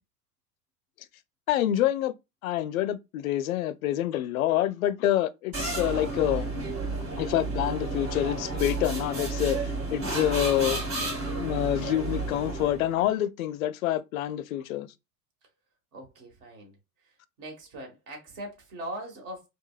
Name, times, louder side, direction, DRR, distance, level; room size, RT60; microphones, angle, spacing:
voice 1, 1.5-2.1 2.4-6.5 7.2-9.6 9.9-10.8 11.4-14.9, left 12 dB, 65° left, 0.5 m, -27 dB
sound 1, 5.5-12.9, right 3 dB, 30° right, 2.2 m, -31 dB
voice 2, 15.9-16.8 17.0-19.5, right 1 dB, 45° right, 1.5 m, -41 dB
4.8 x 2.1 x 2.4 m
figure-of-eight pair, 80°, 46 cm